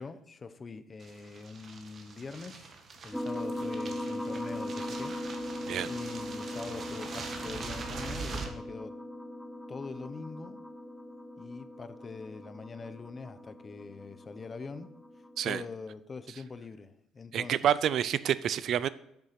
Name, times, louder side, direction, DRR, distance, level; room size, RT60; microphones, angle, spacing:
voice 1, 0.0-2.7 3.0-5.6 5.8-8.9 9.7-10.6 11.4-14.9 15.4-17.7, left 4 dB, 35° left, 12 dB, 0.8 m, -43 dB
sound 1, 1.0-8.5, right 4 dB, 45° right, 1.5 m, -43 dB
sound 2, 3.1-15.5, left 1 dB, 5° left, 0.7 m, -39 dB
voice 2, 17.3-18.9, right 10 dB, 60° right, 17 dB, 0.4 m, -28 dB
8.1 x 7.0 x 5.8 m, 0.79 s
supercardioid pair, 85°, 0 cm